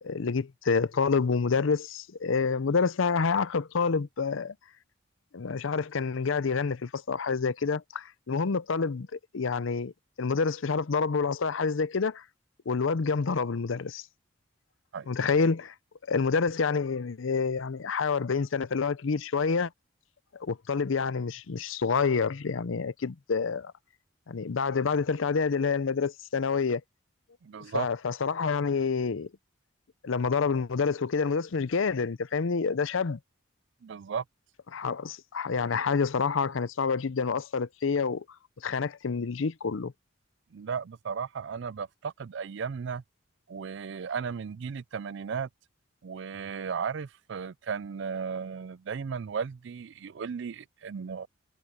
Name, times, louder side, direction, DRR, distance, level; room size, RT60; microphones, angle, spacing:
voice 1, 0.0-4.5 5.3-9.9 10.2-12.2 12.7-14.1 15.1-15.7 16.1-19.7 20.3-23.7 24.3-26.8 27.7-29.3 30.0-33.2 34.7-38.2 38.6-39.9, left 5 dB, 75° left, 0.6 m, -28 dB
voice 2, 27.4-27.9 33.8-34.2 40.5-43.0 43.5-45.5 46.0-51.3, right 6 dB, 60° right, 0.4 m, -35 dB
head